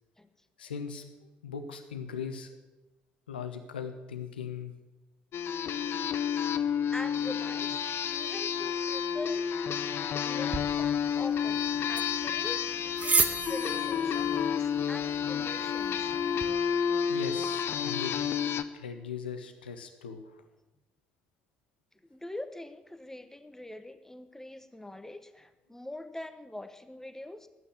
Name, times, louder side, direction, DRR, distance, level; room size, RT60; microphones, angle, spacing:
voice 1, 0.6-2.5 3.3-4.8 17.1-18.1 18.7-20.4, left 6 dB, 80° left, 8 dB, 0.9 m, -39 dB
sound 1, 5.3-18.6, left 8 dB, 50° left, 0.6 m, -30 dB
voice 2, 6.9-7.8 8.1-9.7 10.1-11.6 11.9-12.6 13.0-14.3 14.6-16.1 22.1-27.5, left 1 dB, 10° left, 10 dB, 1.1 m, -43 dB
sound 2, 10.5-16.5, right 4 dB, 30° right, 0.9 m, -35 dB
10.5 x 8.9 x 8.1 m, 1.0 s
figure-of-eight pair, 45°, 5 cm